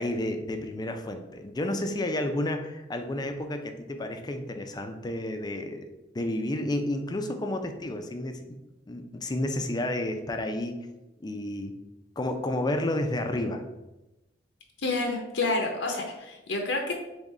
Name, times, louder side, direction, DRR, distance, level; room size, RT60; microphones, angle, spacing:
voice 1, 0.0-5.8 6.1-8.6 8.9-10.8 11.2-11.7 12.2-13.6, left 1 dB, 20° left, 6 dB, 0.4 m, -31 dB
voice 2, 14.8-16.9, left 2 dB, 80° left, 2 dB, 0.7 m, -29 dB
3.7 x 3.5 x 4.1 m, 1.0 s
head